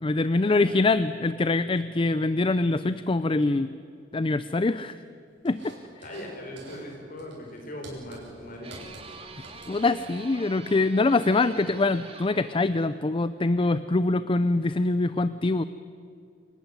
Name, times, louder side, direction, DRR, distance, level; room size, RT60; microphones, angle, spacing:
voice 1, 0.0-3.7 4.1-5.0 5.4-5.8 9.7-15.6, left 2 dB, 30° left, 14 dB, 0.5 m, -24 dB
sound 1, 5.5-6.3 6.6-6.9 7.2-10.4, right 2 dB, 75° right, 7.1 m, -48 dB
voice 2, 6.0-8.7 9.3-9.7, left 1 dB, 50° left, 1 dB, 5.7 m, -40 dB
sound 2, 8.6-13.1, right 4 dB, 30° right, 2.0 m, -45 dB
27.5 x 14.5 x 9.9 m, 2.4 s
head